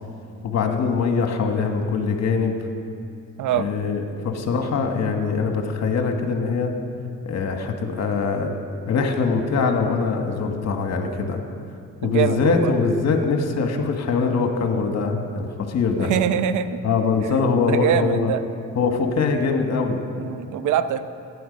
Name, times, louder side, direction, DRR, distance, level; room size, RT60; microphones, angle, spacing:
voice 1, 0.4-2.6 3.5-6.7 7.2-8.5 8.9-11.4 12.0-16.1 16.8-18.3 18.7-20.0, left 4 dB, 60° left, 5 dB, 1.5 m, -22 dB
voice 2, 12.0-12.7 16.0-16.7 17.2-17.4 17.7-18.4 20.2-21.0, right 9 dB, 75° right, 12 dB, 0.7 m, -23 dB
15.5 x 9.8 x 5.3 m, 2.6 s
cardioid pair, 90°, 30 cm